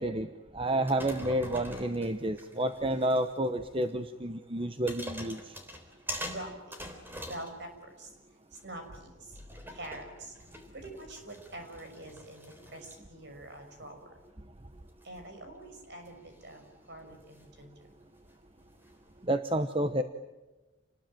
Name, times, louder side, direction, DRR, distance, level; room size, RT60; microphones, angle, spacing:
voice 1, 0.0-5.5 19.2-20.0, right 1 dB, 25° right, 9 dB, 0.9 m, -30 dB
sound 1, 0.7-3.5 3.8-3.9 4.6-8.1 8.5-19.3, equal, 10° right, 3.6 m, -46 dB
voice 2, 6.2-6.8 7.3-8.1 8.5-9.1 9.7-10.3 10.7-14.0 15.0-16.6 16.9-17.7, right 1 dB, 55° right, 5 dB, 6.2 m, -45 dB
29.0 x 20.5 x 9.0 m, 1.1 s
head